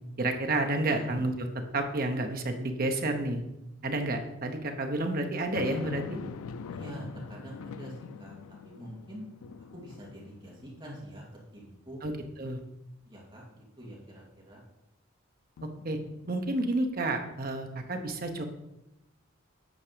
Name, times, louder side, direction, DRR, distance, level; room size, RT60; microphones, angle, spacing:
voice 1, 0.2-1.5 1.7-3.4 3.8-6.2 12.0-12.1 12.4-12.6 15.8-16.0 16.3-18.4, right 2 dB, 45° right, 5 dB, 0.9 m, -30 dB
sound 1, 5.5-11.1 11.6-11.7 15.6-16.6, left 6 dB, 90° left, 0.4 m, -43 dB
voice 2, 6.7-8.4 8.6-9.2 9.7-11.2 11.5-12.0 13.1-14.6, equal, 20° right, -4 dB, 2.2 m, -45 dB
8.6 x 4.9 x 5.1 m, 0.90 s
head